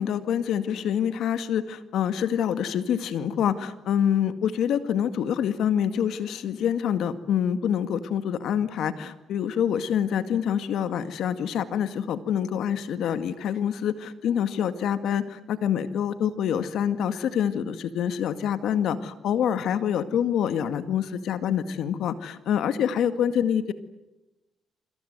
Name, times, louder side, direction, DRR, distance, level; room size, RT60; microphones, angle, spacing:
voice 1, 0.0-23.7, left 9 dB, 75° left, 11 dB, 2.0 m, -26 dB
27.5 x 26.0 x 8.1 m, 1.0 s
cardioid pair, 90°, 0 cm